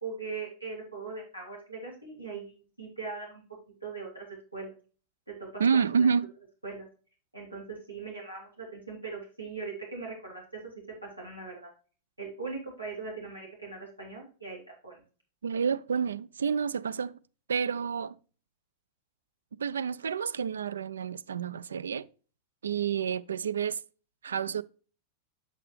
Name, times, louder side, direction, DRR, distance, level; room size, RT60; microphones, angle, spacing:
voice 1, 0.0-3.4 3.8-4.3 4.5-4.7 5.4-6.1 6.6-6.8 7.3-10.7 11.0-11.7 12.2-15.0, right 4 dB, 85° right, 2.9 m, -40 dB
voice 2, 5.6-6.3 15.4-17.2 17.5-18.2 19.6-22.1 22.6-23.8 24.2-24.6, right 6 dB, 70° right, 0.3 m, -29 dB
7.5 x 6.6 x 3.1 m
figure-of-eight pair, 90°, 0 cm